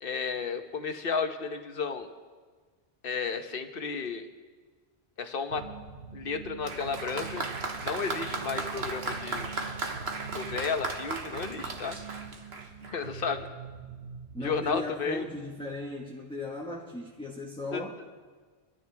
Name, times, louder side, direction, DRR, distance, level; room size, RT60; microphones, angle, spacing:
voice 1, 0.0-2.1 3.0-4.3 5.2-5.6 6.1-7.5 7.8-9.6 10.3-12.0 12.9-13.5 14.4-15.3 17.7-17.8, left 5 dB, 60° left, 7 dB, 1.2 m, -33 dB
sound 1, 5.5-14.8, right 5 dB, 50° right, 1.1 m, -44 dB
Applause, 6.6-13.1, right 3 dB, 75° right, 1.5 m, -36 dB
voice 2, 14.3-18.0, left 2 dB, 5° left, -3 dB, 1.3 m, -37 dB
25.5 x 12.5 x 3.4 m, 1.5 s
omnidirectional pair, 1.1 m